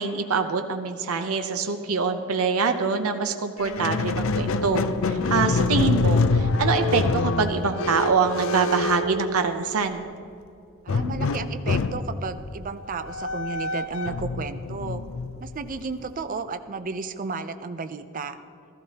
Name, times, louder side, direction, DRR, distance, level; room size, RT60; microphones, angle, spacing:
voice 1, 0.0-10.1, right 5 dB, 85° right, 6 dB, 0.7 m, -25 dB
Squeak, 3.6-9.9 10.9-16.1, left 3 dB, 65° left, 0.5 m, -26 dB
voice 2, 10.8-15.0 15.4-18.4, right 4 dB, 40° right, 10 dB, 0.5 m, -33 dB
15.0 x 13.5 x 2.8 m, 2.5 s
head